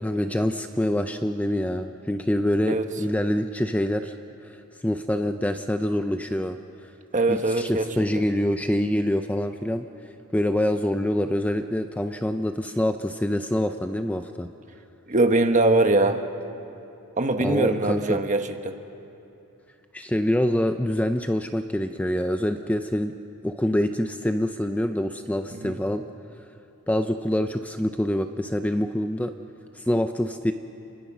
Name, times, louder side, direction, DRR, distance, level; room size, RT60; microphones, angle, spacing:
voice 1, 0.0-4.1 4.4-6.6 7.3-9.9 10.3-14.5 17.4-18.2 19.9-23.1 23.4-26.0 26.9-29.3 29.7-30.5, left 1 dB, 5° left, 7 dB, 0.5 m, -25 dB
voice 2, 7.1-7.9 15.1-16.2 17.2-18.7 25.5-25.8, right 2 dB, 35° right, 6 dB, 1.3 m, -22 dB
30.0 x 21.5 x 6.1 m, 2.9 s
head